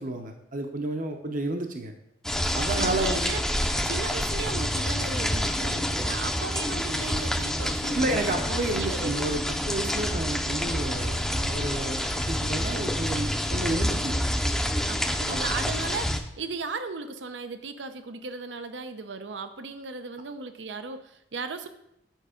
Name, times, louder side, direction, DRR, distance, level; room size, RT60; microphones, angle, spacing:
voice 1, 0.0-1.9 2.5-3.2 7.9-9.4 9.7-14.2 15.3-15.4, right 2 dB, 50° right, 5 dB, 0.8 m, -31 dB
sound 1, 2.2-16.2, equal, 5° left, 0.5 m, -28 dB
voice 2, 2.8-3.4 3.8-8.4 8.7-9.1 14.9-21.7, right 4 dB, 85° right, 10 dB, 0.6 m, -36 dB
9.2 x 5.3 x 5.0 m, 0.80 s
head